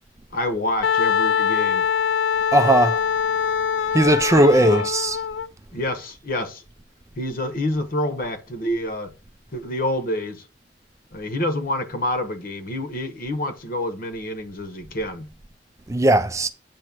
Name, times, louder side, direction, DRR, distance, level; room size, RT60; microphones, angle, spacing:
voice 1, 0.3-1.9 4.6-4.9 5.7-6.6 7.1-9.1 9.5-10.5 11.1-15.3, left 1 dB, 55° left, 1.1 m, -27 dB
Wind instrument woodwind instrument, 0.8-5.5, left 7 dB, 80° left, 0.4 m, -23 dB
voice 2, 2.5-3.0 3.9-5.2 15.9-16.5, right 1 dB, 15° right, 0.4 m, -17 dB
8.7 x 3.0 x 6.0 m
head